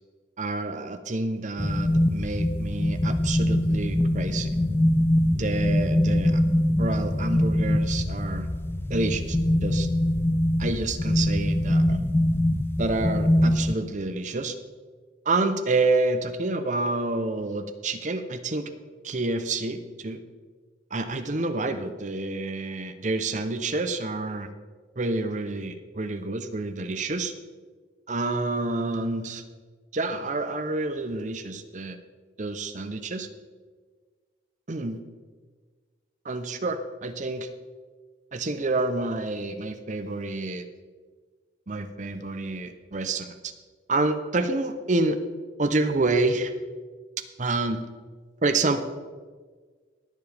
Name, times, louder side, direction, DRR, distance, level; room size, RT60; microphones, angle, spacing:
voice 1, 0.4-4.5 5.3-6.4 6.8-8.5 8.9-9.9 10.6-12.0 12.8-14.6 15.3-18.6 19.0-20.2 20.9-24.5 25.0-27.3 28.1-29.4 29.9-32.0 32.4-33.3 34.7-35.0 36.2-37.5 38.3-40.7 41.7-43.5 43.9-45.2 45.6-46.5 47.4-47.9 48.4-48.9, right 2 dB, 40° right, 9 dB, 0.7 m, -28 dB
sound 1, 1.6-13.7, left 1 dB, 10° left, 0.3 m, -23 dB
20.0 x 7.1 x 3.4 m, 1.5 s
head